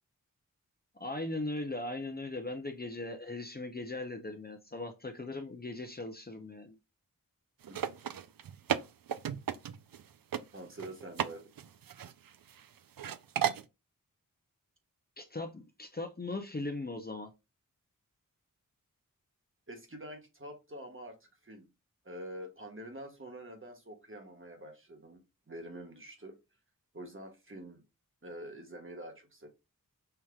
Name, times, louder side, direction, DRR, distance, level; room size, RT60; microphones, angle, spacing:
voice 1, 1.0-6.8 15.2-17.3, left 2 dB, 25° left, 0.7 m, -39 dB
sound 1, 7.6-10.0 10.3-10.4 10.8-11.3 11.6-12.6 13.0-13.6, right 8 dB, 75° right, 0.5 m, -34 dB
voice 2, 10.5-11.4 19.7-21.7 22.0-26.4 26.9-27.8 28.2-29.5, right 1 dB, 35° right, 1.4 m, -46 dB
5.6 x 3.1 x 2.3 m
wide cardioid pair, 55°, 34 cm